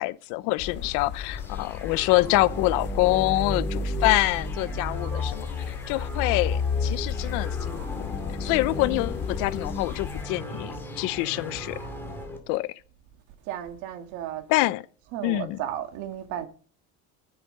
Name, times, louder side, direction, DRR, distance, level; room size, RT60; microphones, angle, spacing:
voice 1, 0.0-7.8 8.3-11.8 12.5-12.7 14.5-14.8 15.2-15.6, left 20 dB, 85° left, 0.8 m, -26 dB
sound 1, 0.6-10.2, left 9 dB, 35° left, 0.8 m, -37 dB
sound 2, 1.3-12.4, left 3 dB, 5° left, 2.4 m, -32 dB
voice 2, 13.5-14.4 15.1-16.5, right 11 dB, 75° right, 1.9 m, -34 dB
10.5 x 10.0 x 5.5 m
cardioid pair, 175°, 30 cm